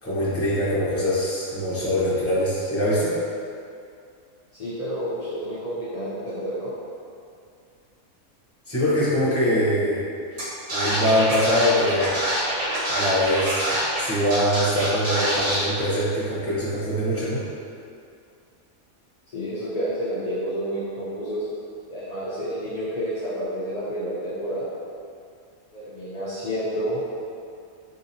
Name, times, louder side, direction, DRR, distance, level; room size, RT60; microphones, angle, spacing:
voice 1, 0.0-3.2 8.7-10.0 10.7-12.1 12.9-17.4, equal, 10° left, -11 dB, 0.8 m, -23 dB
voice 2, 4.5-6.7 19.3-21.4 21.9-24.7 25.7-27.0, equal, 55° left, -12 dB, 0.4 m, -29 dB
Scratching (performance technique), 10.4-10.5 10.7-14.0 14.3-15.6, right 1 dB, 40° right, 0.5 m, -25 dB
3.7 x 2.8 x 2.7 m, 2.4 s
omnidirectional pair, 1.5 m